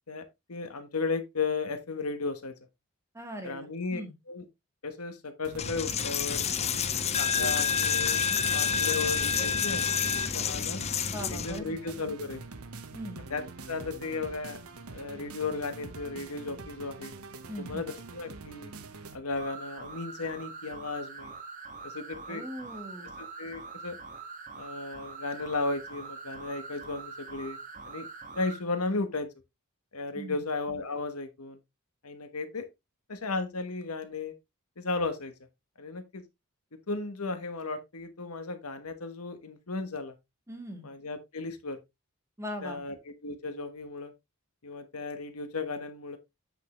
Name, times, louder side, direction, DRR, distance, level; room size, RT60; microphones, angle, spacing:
voice 1, 0.1-2.6 3.4-4.0 4.3-4.4 4.8-6.5 7.2-8.2 8.5-10.8 11.3-12.4 13.3-14.6 14.9-17.1 17.6-18.7 19.1-21.3 21.8-22.4 23.2-24.0 24.6-27.6 27.8-28.1 28.3-29.3 29.9-31.6 32.0-32.7 33.1-34.3 34.8-35.3 35.8-36.2 36.9-40.1 40.8-41.8 42.6-43.0 43.2-44.1 44.6-46.2, left 3 dB, 85° left, 1.3 m, -35 dB
voice 2, 3.1-4.1 11.1-12.0 12.9-13.2 17.5-17.9 22.3-23.1 30.1-30.4 40.5-40.9 42.4-42.8, equal, 15° right, 2.0 m, -40 dB
sound 1, 5.4-19.2, right 3 dB, 80° right, 1.1 m, -45 dB
Coin (dropping), 5.6-11.6, left 6 dB, 30° left, 0.5 m, -28 dB
sound 2, 19.4-28.6, right 4 dB, 35° right, 1.6 m, -44 dB
8.2 x 6.1 x 3.1 m
head